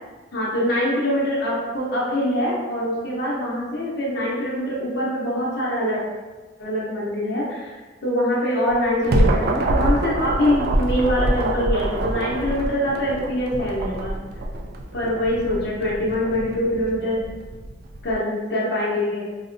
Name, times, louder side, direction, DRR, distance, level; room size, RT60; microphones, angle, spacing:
voice 1, 0.3-6.0 6.6-14.1 14.9-17.2 18.0-19.2, left 1 dB, 65° left, -6 dB, 0.7 m, -24 dB
sound 1, 8.7-18.1, right 1 dB, 55° right, 0.4 m, -25 dB
3.9 x 2.1 x 2.6 m, 1.3 s
head